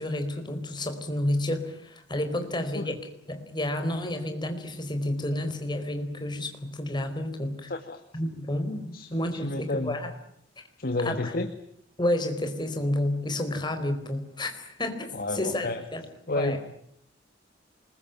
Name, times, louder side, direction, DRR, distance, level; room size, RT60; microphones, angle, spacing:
voice 1, 0.0-7.7 8.1-10.1 11.0-11.2 12.0-16.0 16.4-16.6, left 1 dB, 25° left, 7 dB, 4.3 m, -30 dB
voice 2, 2.4-3.0 7.7-8.0 8.9-10.0 10.8-11.5 15.1-15.8 16.3-16.6, left 2 dB, 55° left, 8 dB, 1.8 m, -31 dB
28.0 x 21.5 x 9.0 m, 0.72 s
head